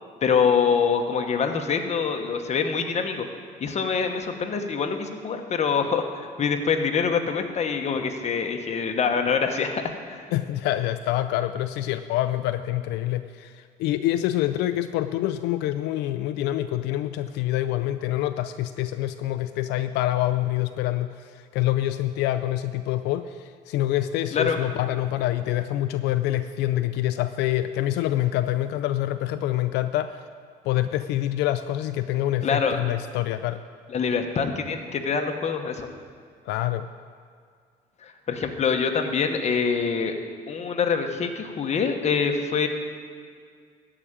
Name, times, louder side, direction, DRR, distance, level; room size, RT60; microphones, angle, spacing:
voice 1, 0.2-3.3 3.6-10.2 24.3-24.6 32.4-32.8 33.9-35.9 38.0-40.1 40.5-42.7, left 6 dB, 40° left, 5 dB, 1.2 m, -25 dB
voice 2, 10.3-30.2 30.6-33.6 36.5-36.9, left 13 dB, 90° left, 10 dB, 0.4 m, -26 dB
13.5 x 5.0 x 8.9 m, 2.1 s
cardioid pair, 110°, 17 cm